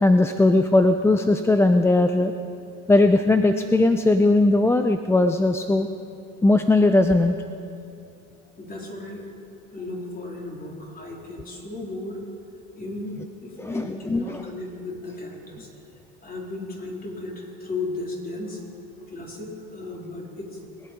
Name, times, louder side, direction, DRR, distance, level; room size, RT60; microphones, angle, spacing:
voice 1, 0.0-2.3 2.9-5.9 6.4-7.3 13.6-14.4, left 2 dB, 10° left, 8 dB, 0.5 m, -19 dB
voice 2, 8.6-9.2 9.7-12.2 12.8-15.7 16.2-18.6 19.1-20.6, left 2 dB, 30° left, -2 dB, 3.7 m, -35 dB
22.0 x 8.6 x 5.2 m, 2.5 s
supercardioid pair, 90°, 30 cm